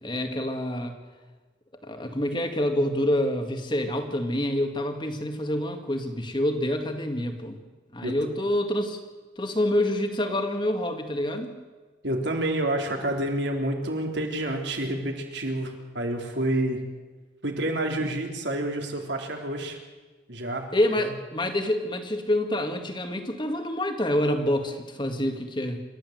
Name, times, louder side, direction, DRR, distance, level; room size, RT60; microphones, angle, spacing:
voice 1, 0.0-0.9 1.8-7.6 7.9-9.0 9.4-11.5 20.7-25.8, left 1 dB, 25° left, 5 dB, 2.1 m, -27 dB
voice 2, 12.0-16.8 17.4-19.8 20.3-20.7, right 1 dB, 70° right, 2 dB, 3.3 m, -28 dB
27.5 x 13.5 x 7.9 m, 1.3 s
head